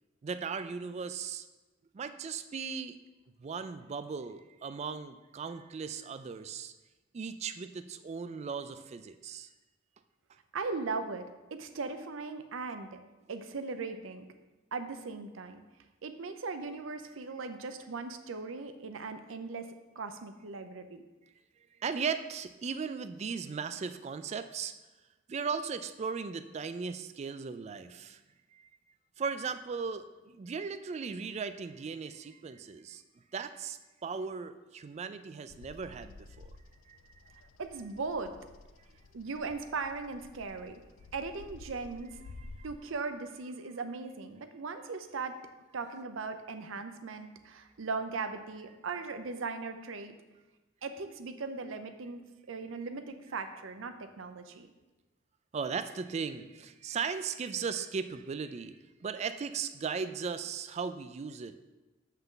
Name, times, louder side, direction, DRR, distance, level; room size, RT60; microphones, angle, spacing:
voice 1, 0.2-1.5 1.9-3.0 3.4-6.7 7.1-9.5 21.8-24.7 25.3-28.2 28.5-28.6 29.2-33.0 33.3-36.5 36.9-37.0 42.4-42.7 55.5-61.6, right 5 dB, 35° right, 11 dB, 0.3 m, -37 dB
voice 2, 10.5-11.2 11.5-13.0 13.3-14.3 14.7-15.6 16.0-21.0 37.6-38.3 39.1-40.8 41.1-42.2 42.6-45.4 45.7-50.1 50.8-54.7, right 4 dB, 80° right, 8 dB, 0.6 m, -38 dB
Bird vocalization bird call bird song, 35.5-42.8, left 3 dB, 80° left, 0.4 m, -52 dB
7.0 x 5.7 x 3.8 m, 1.1 s
head